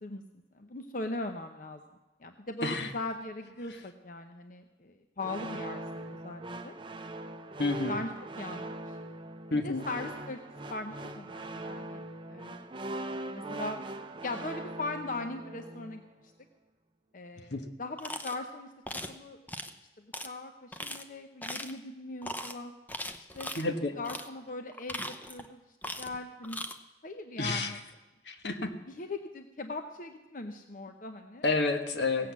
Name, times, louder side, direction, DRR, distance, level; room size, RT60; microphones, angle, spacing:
voice 1, 0.5-1.8 2.2-6.8 7.6-8.7 9.5-10.4 10.7-12.6 13.3-13.8 14.2-16.0 17.1-18.7 19.1-19.4 20.2-22.7 23.3-23.5 24.0-25.6 26.0-26.6 27.0-27.8 28.9-31.4 32.2-32.3, left 2 dB, 50° left, 6 dB, 0.7 m, -39 dB
sound 1, 5.2-16.1, right 1 dB, 30° right, 0.6 m, -41 dB
voice 2, 7.6-7.9 9.5-9.9 17.5-17.6 23.6-24.0 27.4-27.7 28.3-28.7 31.4-32.3, left 3 dB, 75° left, 6 dB, 1.4 m, -29 dB
sound 2, 18.0-18.4 18.9-19.1 19.5-19.7 20.1-20.3 20.7-21.0 21.4-21.8 22.2-22.5 22.9-23.6 24.0-24.3 24.7-25.5 25.8-26.2 26.4-26.7, left 1 dB, 10° left, 0.7 m, -39 dB
17.0 x 8.1 x 7.4 m, 1.1 s
head